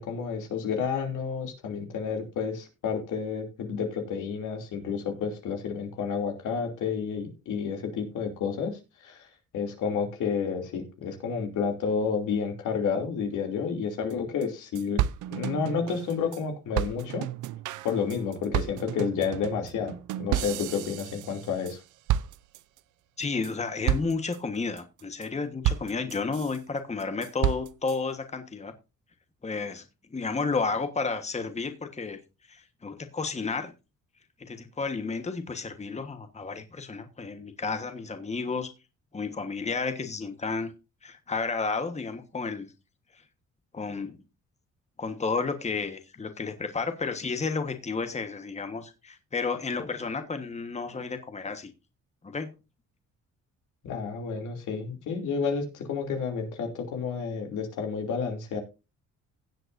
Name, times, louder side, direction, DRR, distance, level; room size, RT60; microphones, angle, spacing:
voice 1, 0.0-9.3 9.5-15.0 15.3-17.3 17.8-21.8 53.8-58.6, left 6 dB, 80° left, 2.9 m, -30 dB
sound 1, 14.1-14.2 14.4-14.5 14.7-16.4 16.7-21.8 22.1-22.8 23.2-23.5 23.9-24.4 24.8-25.3 25.6-26.6 27.0-28.0, right 12 dB, 80° right, 0.6 m, -31 dB
voice 2, 23.2-28.7 29.4-29.8 30.1-32.2 32.5-33.7 34.4-38.7 39.1-40.7 41.0-42.7 43.7-44.2 45.0-51.7 52.2-52.5, left 4 dB, 20° left, 1.3 m, -32 dB
17.0 x 7.8 x 2.6 m
cardioid pair, 90°, 30 cm